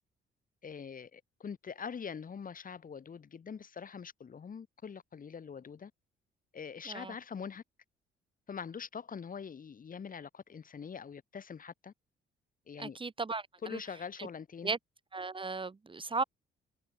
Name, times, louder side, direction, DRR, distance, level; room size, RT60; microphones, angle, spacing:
voice 1, 0.6-5.9 6.5-7.6 8.5-11.9 12.7-13.0 13.6-14.7, left 6 dB, 45° left, 3.7 m, -43 dB
voice 2, 12.8-13.5 13.7-13.8 14.2-14.3 14.6-14.8 15.1-16.2, right 3 dB, 25° right, 1.7 m, -35 dB
cardioid pair, 90°, 20 cm